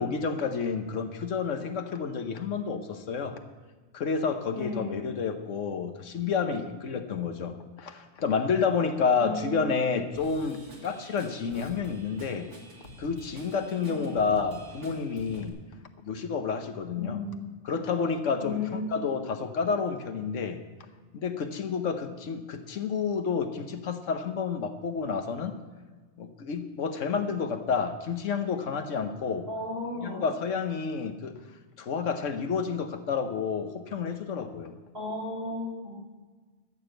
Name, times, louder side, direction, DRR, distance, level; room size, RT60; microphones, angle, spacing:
voice 1, 0.0-3.4 3.9-12.5 13.0-15.6 16.0-17.2 17.6-20.6 21.1-25.6 26.2-29.5 30.0-31.4 31.8-34.8, left 5 dB, 90° left, 7 dB, 1.3 m, -30 dB
voice 2, 4.5-5.0 9.2-9.7 13.8-14.2 16.9-17.4 18.4-18.8 29.5-30.2 34.9-36.0, left 3 dB, 55° right, -4 dB, 5.6 m, -34 dB
Drum kit / Drum, 10.1-15.5, right 1 dB, 75° right, 2.3 m, -48 dB
13.5 x 7.1 x 7.7 m, 1.4 s
omnidirectional pair, 1.2 m